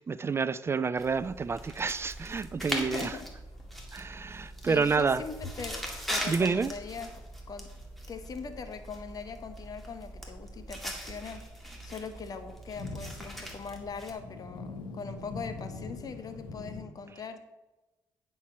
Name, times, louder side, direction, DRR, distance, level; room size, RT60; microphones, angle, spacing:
voice 1, 0.0-3.1 3.9-5.2 6.3-6.7, right 5 dB, 30° right, 0.3 m, -29 dB
sound 1, 1.0-14.1, equal, ahead, 2.1 m, -41 dB
sound 2, 2.4-16.8, left 3 dB, 80° left, 1.2 m, -47 dB
voice 2, 2.7-3.3 4.6-7.1 7.5-7.7 8.1-11.4 11.8-17.4, left 5 dB, 50° left, 1.0 m, -41 dB
9.8 x 4.4 x 5.9 m
supercardioid pair, 70°, 8 cm